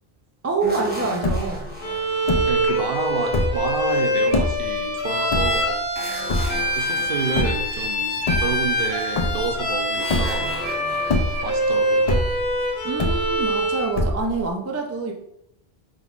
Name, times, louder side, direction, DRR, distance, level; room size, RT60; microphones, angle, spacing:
voice 1, 0.4-1.7 12.8-15.1, right 4 dB, 25° right, 2 dB, 0.3 m, -26 dB
sound 1, 0.6-3.6 5.9-8.7 10.0-13.1, left 1 dB, 10° right, 0.8 m, -36 dB
sound 2, 0.8-0.9 1.0-1.7 2.3-2.7 3.2-3.7 4.3-4.7 5.3-5.9 6.3-6.8 7.3-7.7 8.2-8.9 9.2-9.7 10.1-10.6 11.0-11.6 12.1-12.6 13.0-13.6 13.9-14.5, left 2 dB, 45° left, 0.5 m, -24 dB
Bowed string instrument, 1.8-14.0, equal, 70° left, 1.6 m, -24 dB
voice 2, 2.5-5.8 6.7-10.6 11.4-12.2, right 5 dB, 65° right, 4 dB, 0.7 m, -29 dB
5.1 x 3.8 x 2.4 m, 0.79 s
omnidirectional pair, 1.1 m